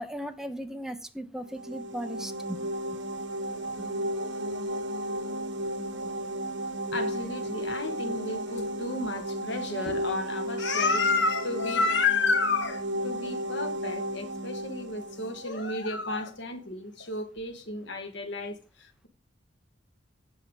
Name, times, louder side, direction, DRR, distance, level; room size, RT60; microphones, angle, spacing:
voice 1, 0.0-3.0 3.8-3.9 6.9-7.0, equal, 5° right, 0.8 m, -38 dB
sound 1, 1.5-16.1, right 1 dB, 70° right, 1.5 m, -34 dB
voice 2, 6.9-19.1, left 3 dB, 70° left, 1.5 m, -31 dB
8.5 x 5.6 x 5.2 m
head